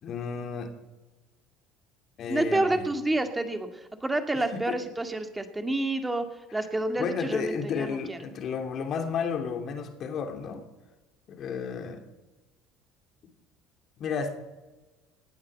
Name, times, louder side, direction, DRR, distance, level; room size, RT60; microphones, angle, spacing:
voice 1, 0.0-0.7 2.2-2.9 4.3-4.8 6.5-6.6 6.9-10.6 11.3-12.0 14.0-14.3, left 6 dB, 50° left, 6 dB, 3.0 m, -32 dB
voice 2, 2.3-3.7 4.0-6.2 6.5-8.2, right 2 dB, 10° right, 7 dB, 2.1 m, -28 dB
19.0 x 8.7 x 7.9 m, 1.1 s
supercardioid pair, 100°, 0 cm